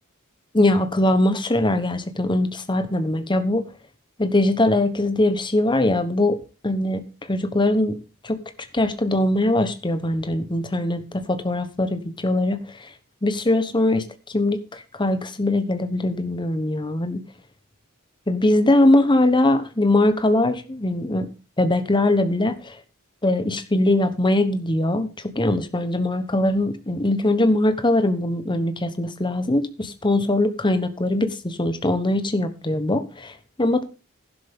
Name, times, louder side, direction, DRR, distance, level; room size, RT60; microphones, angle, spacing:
voice 1, 0.5-3.6 4.2-6.4 6.6-8.0 8.2-8.4 8.7-12.9 13.2-17.2 18.3-21.3 21.6-22.8 23.2-33.8, left 1 dB, 20° left, 1.1 m, -21 dB
12.0 x 11.0 x 3.7 m
head